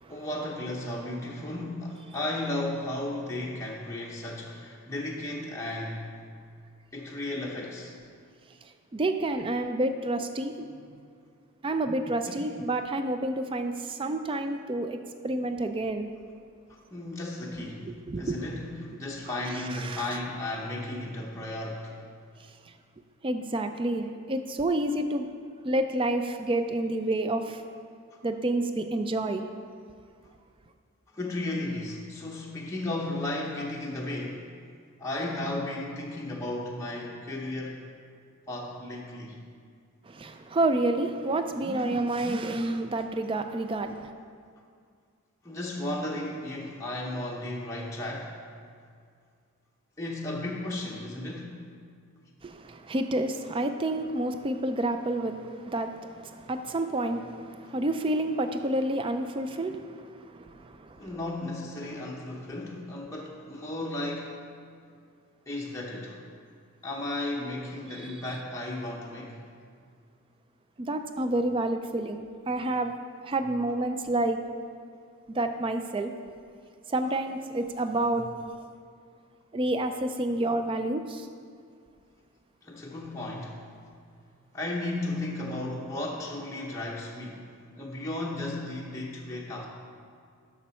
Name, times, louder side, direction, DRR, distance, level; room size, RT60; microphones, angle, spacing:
voice 1, 0.1-6.1 6.9-7.9 12.3-12.5 16.7-22.0 31.1-34.5 35.0-37.9 38.5-39.4 45.4-48.4 50.0-51.6 61.0-64.4 65.5-66.2 66.8-69.4 82.6-83.6 84.5-89.7, left 1 dB, 15° left, -4 dB, 0.7 m, -34 dB
voice 2, 8.9-10.7 11.6-16.1 17.8-18.4 19.5-20.2 23.2-25.3 25.6-27.6 28.2-29.5 40.1-44.1 52.4-61.0 67.9-68.2 70.8-72.9 73.2-74.4 75.3-76.1 76.9-78.3 79.5-81.3, right 2 dB, 25° right, 8 dB, 0.4 m, -29 dB
7.2 x 6.1 x 5.6 m, 2.2 s
head